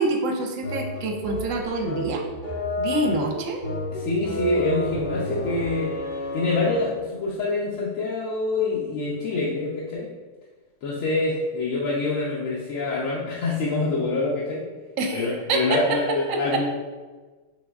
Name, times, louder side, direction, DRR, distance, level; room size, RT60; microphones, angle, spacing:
voice 1, 0.0-2.2 2.8-3.6 15.0-15.8 16.1-16.6, right 3 dB, 70° right, 3 dB, 0.9 m, -26 dB
sound 1, 0.6-7.1, left 1 dB, 45° left, 0.6 m, -30 dB
voice 2, 3.9-6.0 6.3-10.1 10.8-14.7 15.1-16.7, left 3 dB, 70° left, -5 dB, 1.0 m, -26 dB
5.1 x 3.4 x 2.3 m, 1.3 s
omnidirectional pair, 1.5 m